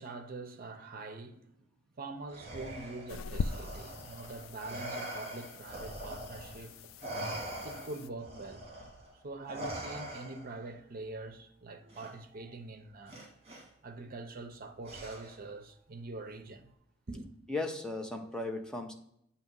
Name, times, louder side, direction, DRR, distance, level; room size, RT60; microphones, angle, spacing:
voice 1, 0.0-1.6 2.0-6.9 7.6-8.7 9.2-13.2 13.8-16.7 17.1-17.3, right 3 dB, 50° right, 0.7 m, -44 dB
Respiratory sounds, 2.3-6.6 7.0-10.6 11.9-12.1 13.1-13.6 14.8-15.5, right 1 dB, 30° right, 1.6 m, -43 dB
sound 1, 3.1-8.1, left 5 dB, 85° left, 0.3 m, -42 dB
voice 2, 17.5-18.9, left 2 dB, 5° left, 0.7 m, -36 dB
8.2 x 2.9 x 5.3 m
head